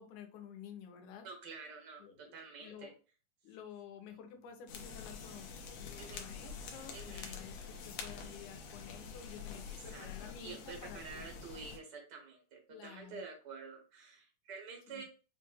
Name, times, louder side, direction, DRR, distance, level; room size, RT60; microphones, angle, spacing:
voice 1, 0.0-1.3 2.0-2.9 3.4-11.3 12.7-13.2 14.9-15.0, left 8 dB, 90° left, 5 dB, 2.2 m, -51 dB
voice 2, 1.2-2.0 2.3-2.9 6.0-6.3 6.9-7.4 9.7-15.0, right 5 dB, 90° right, 1 dB, 0.9 m, -49 dB
sound 1, 4.7-11.8, left 6 dB, 70° left, 1.7 m, -47 dB
5.7 x 2.2 x 3.1 m, 0.36 s
omnidirectional pair, 3.3 m